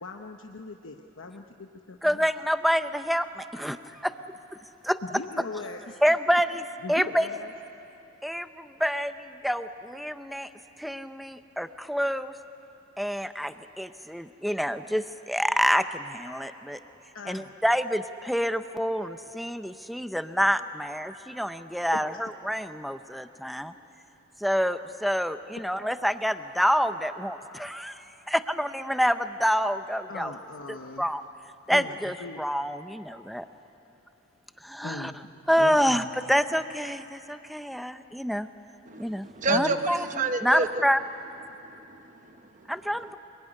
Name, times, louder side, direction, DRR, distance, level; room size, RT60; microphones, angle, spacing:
voice 1, 0.0-2.2 5.0-6.0 6.8-7.5 17.1-17.5 30.1-31.1 31.7-32.4 34.8-35.3 35.6-36.1 39.5-39.9, left 3 dB, 80° left, 3 dB, 1.0 m, -40 dB
voice 2, 2.0-4.1 4.8-5.0 6.0-7.3 8.2-10.5 10.8-12.3 13.0-16.8 17.3-23.7 24.4-30.3 30.7-31.2 31.7-33.5 34.6-35.1 35.5-38.5 39.0-40.0 40.4-41.0 42.7-43.2, equal, ahead, 10 dB, 0.6 m, -27 dB
voice 3, 38.9-40.8 41.6-42.7, right 3 dB, 40° right, 8 dB, 1.1 m, -30 dB
25.0 x 21.5 x 9.9 m, 2.9 s
head